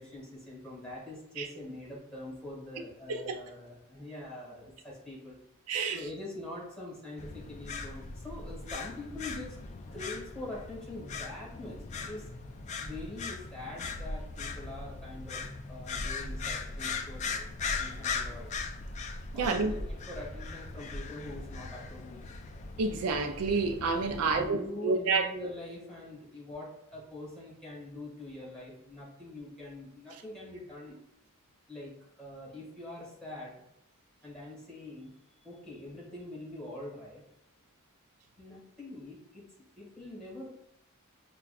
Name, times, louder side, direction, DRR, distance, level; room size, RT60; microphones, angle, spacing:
voice 1, 0.0-5.4 5.9-9.6 9.9-11.8 12.0-12.3 12.8-15.4 15.7-18.5 19.3-22.3 24.1-30.9 31.7-31.9 32.2-33.5 34.2-35.1 35.4-37.2 38.4-40.5, left 2 dB, 5° left, 1.4 m, -44 dB
voice 2, 5.7-6.0 19.3-19.7 22.8-25.3, right 4 dB, 85° right, 0.4 m, -29 dB
sound 1, 7.2-24.5, left 4 dB, 35° left, 0.3 m, -39 dB
5.7 x 2.3 x 2.3 m
head